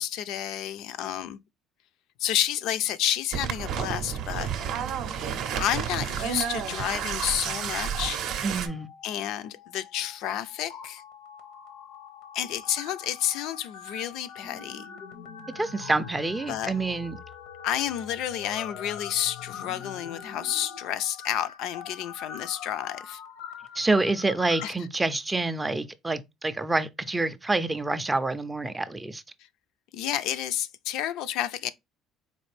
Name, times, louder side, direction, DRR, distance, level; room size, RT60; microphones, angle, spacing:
voice 1, 0.0-1.4 2.2-4.5 5.6-8.2 9.0-11.0 12.3-14.9 16.5-16.7 17.6-23.2 24.6-24.7 29.9-31.7, left 11 dB, 70° left, 0.3 m, -30 dB
sound 1, 3.3-8.7, right 8 dB, 65° right, 0.6 m, -31 dB
sound 2, 6.1-7.5 7.8-8.1 8.6-24.6, left 7 dB, 90° left, 0.7 m, -43 dB
voice 2, 8.4-8.9 15.6-17.2 23.8-29.2, right 2 dB, 15° right, 0.3 m, -27 dB
4.2 x 2.5 x 3.2 m
cardioid pair, 125°, 0 cm